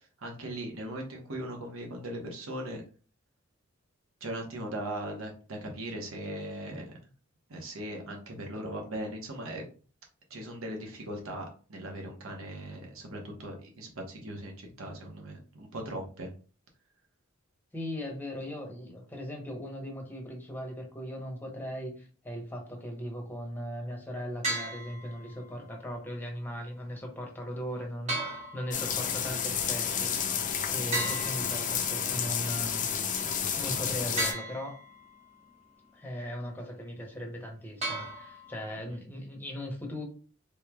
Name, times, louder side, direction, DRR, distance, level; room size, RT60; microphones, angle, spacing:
voice 1, 0.2-2.8 4.2-6.8 7.5-9.6 10.3-16.3 30.7-31.0 38.9-39.0, right 1 dB, 75° right, 1 dB, 0.9 m, -39 dB
voice 2, 17.7-32.9 33.5-34.7 35.9-40.0, equal, 10° left, 1 dB, 0.8 m, -38 dB
sound 1, 24.4-25.4 28.1-29.2 30.9-32.1 34.2-35.1 37.8-38.7, right 2 dB, 35° right, 1.1 m, -36 dB
sound 2, 28.7-34.3, left 7 dB, 40° left, 0.4 m, -31 dB
3.5 x 3.1 x 2.3 m, 0.38 s
head